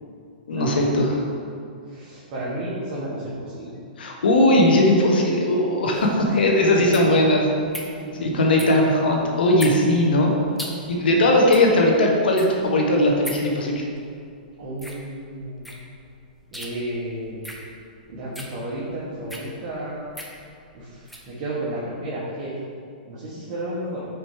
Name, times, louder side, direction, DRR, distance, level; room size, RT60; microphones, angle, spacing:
voice 1, 0.5-1.2 4.0-7.5 8.2-10.3 10.9-13.8, left 1 dB, 85° left, 0 dB, 1.2 m, -19 dB
voice 2, 1.9-3.7 6.4-6.8 7.9-8.7 11.3-11.5 14.6-15.7 16.5-17.4 18.1-20.1 20.7-22.6 23.1-24.0, right 1 dB, 40° right, -7 dB, 1.3 m, -32 dB
sound 1, 5.9-21.3, equal, ahead, 0.6 m, -40 dB
5.1 x 4.3 x 4.8 m, 2.3 s
hypercardioid pair, 145°, 5 cm